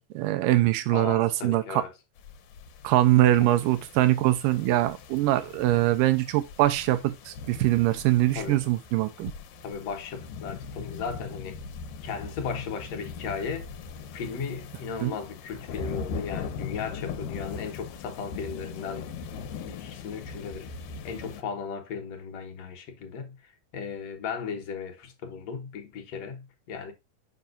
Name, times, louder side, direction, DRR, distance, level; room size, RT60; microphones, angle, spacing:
voice 1, 0.0-1.8 2.8-9.3 15.0-15.1, right 15 dB, 90° right, 2.3 m, -23 dB
voice 2, 0.9-1.9 3.4-3.5 8.3-8.6 9.6-11.6 12.0-13.7 14.1-19.1 19.6-20.7 21.0-23.4 23.7-26.9, left 6 dB, 60° left, 2.0 m, -36 dB
sound 1, 2.2-21.4, left 5 dB, 80° left, 2.4 m, -40 dB
7.1 x 5.7 x 2.5 m
omnidirectional pair, 3.9 m